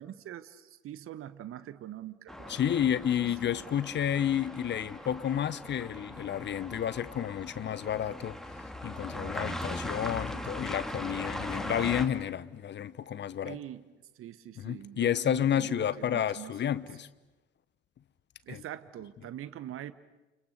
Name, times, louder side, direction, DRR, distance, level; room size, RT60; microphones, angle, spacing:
voice 1, 0.0-2.8 13.4-13.8 14.2-16.5 18.4-19.9, right 12 dB, 45° right, 1.2 m, -43 dB
sound 1, 2.3-12.1, left 1 dB, ahead, 2.8 m, -39 dB
voice 2, 2.5-8.4 8.8-13.6 14.6-17.1 18.5-18.6, left 9 dB, 35° left, 1.1 m, -31 dB
29.5 x 26.0 x 6.8 m
figure-of-eight pair, 55°, 30 cm